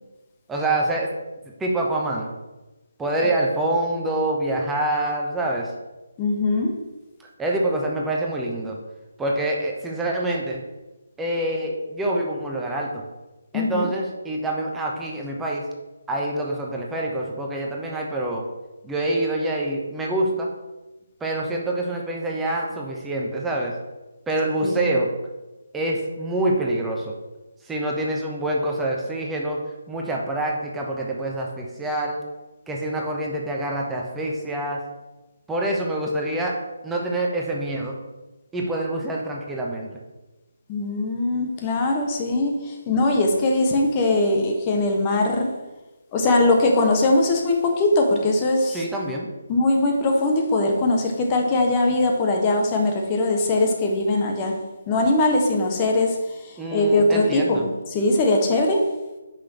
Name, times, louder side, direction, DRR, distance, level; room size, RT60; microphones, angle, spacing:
voice 1, 0.5-1.1 1.6-2.3 3.0-5.7 7.4-8.8 9.2-10.6 11.2-13.0 13.5-15.6 16.1-18.4 18.8-20.5 21.2-23.8 24.3-25.1 25.7-27.1 27.6-29.6 29.9-32.2 32.7-34.8 35.5-36.6 36.8-38.0 38.5-40.0 48.7-49.3 56.6-57.7, right 1 dB, 5° right, -2 dB, 0.9 m, -26 dB
voice 2, 6.2-6.7 13.5-13.9 24.6-24.9 40.7-45.5 46.1-48.8 49.5-54.6 54.9-56.2 56.7-57.6 57.9-58.9, left 2 dB, 20° left, 2 dB, 1.2 m, -21 dB
5.9 x 5.0 x 6.1 m, 1.1 s
figure-of-eight pair, 150°, 0 cm